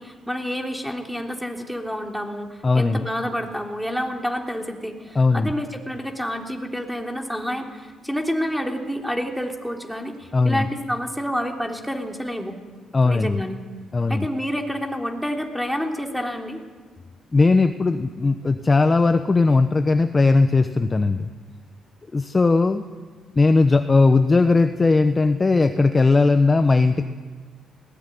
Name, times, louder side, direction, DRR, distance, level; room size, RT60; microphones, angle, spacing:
voice 1, 0.0-12.5 13.0-13.6 14.1-16.6, equal, ahead, 1 dB, 3.5 m, -28 dB
voice 2, 2.6-3.0 5.1-5.5 10.3-10.7 12.9-13.4 13.9-14.3 17.3-21.3 22.1-22.9 23.4-27.1, left 3 dB, 25° left, 8 dB, 0.9 m, -18 dB
20.0 x 18.5 x 10.0 m, 1.4 s
cardioid pair, 90°, 0 cm